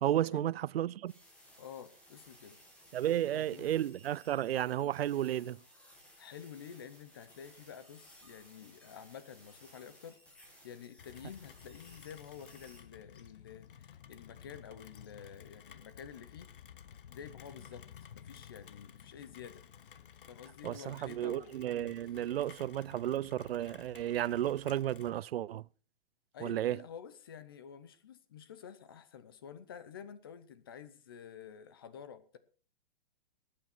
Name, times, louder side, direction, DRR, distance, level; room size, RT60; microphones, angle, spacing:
voice 1, 0.0-1.1 2.9-5.6 20.6-25.7 26.4-26.8, right 12 dB, 85° right, 0.5 m, -33 dB
sound 1, 1.1-12.8, equal, 5° left, 1.7 m, -60 dB
voice 2, 1.6-2.6 3.1-3.7 6.2-10.2 10.6-16.5 17.1-17.9 18.1-19.6 20.3-21.6 22.2-22.3 26.3-32.4, left 8 dB, 25° left, 0.7 m, -50 dB
Rain, 11.0-25.2, left 8 dB, 65° left, 1.0 m, -54 dB
19.5 x 8.7 x 4.4 m
hypercardioid pair, 180°, 29 cm